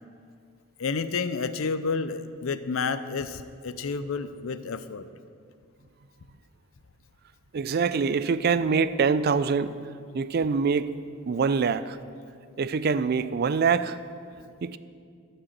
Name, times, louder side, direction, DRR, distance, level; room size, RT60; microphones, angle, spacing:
voice 1, 0.8-5.0, left 4 dB, 80° left, 12 dB, 0.6 m, -30 dB
voice 2, 7.5-9.8 10.1-11.0 11.3-12.0 12.6-14.0 14.6-14.8, right 5 dB, 50° right, 14 dB, 0.4 m, -24 dB
14.0 x 5.5 x 7.3 m, 2.3 s
head